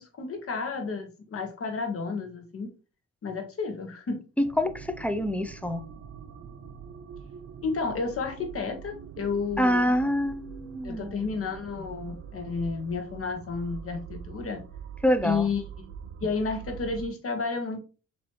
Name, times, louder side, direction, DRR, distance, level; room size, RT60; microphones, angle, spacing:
voice 1, 0.0-2.7 3.2-4.2 7.6-9.9 10.8-14.6 15.2-15.9 16.2-17.8, left 4 dB, 50° left, 1.3 m, -31 dB
voice 2, 4.4-5.8 9.6-11.3 15.0-15.5, equal, 5° left, 0.5 m, -26 dB
sound 1, 4.4-17.1, right 7 dB, 50° right, 0.6 m, -44 dB
4.6 x 3.0 x 3.0 m
cardioid pair, 90°, 30 cm